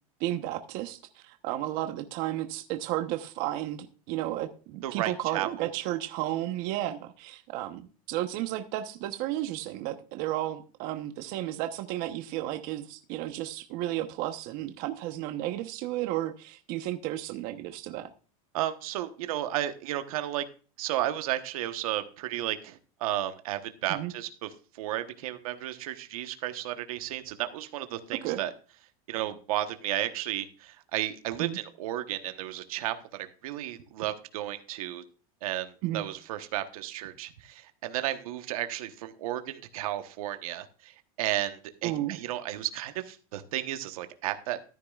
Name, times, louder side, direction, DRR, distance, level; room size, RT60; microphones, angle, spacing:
voice 1, 0.2-18.1 23.9-24.1 28.1-28.4 31.4-31.6 35.8-36.0 41.8-42.2, right 14 dB, 55° right, 8 dB, 1.0 m, -33 dB
voice 2, 4.8-5.7 18.5-20.4 20.8-28.5 29.1-35.0 35.4-44.6, right 13 dB, 75° right, 8 dB, 1.2 m, -33 dB
14.0 x 9.7 x 2.4 m, 0.37 s
supercardioid pair, 130°, 18 cm